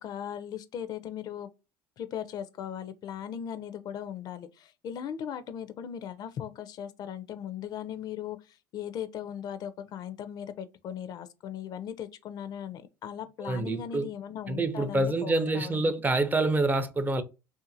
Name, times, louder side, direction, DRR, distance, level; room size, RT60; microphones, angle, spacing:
voice 1, 0.0-1.5 2.0-15.9, left 9 dB, 50° left, 0.4 m, -38 dB
voice 2, 13.4-14.1 14.5-17.2, right 2 dB, 20° right, 0.4 m, -27 dB
2.6 x 2.5 x 2.5 m
hypercardioid pair, 80°, 9 cm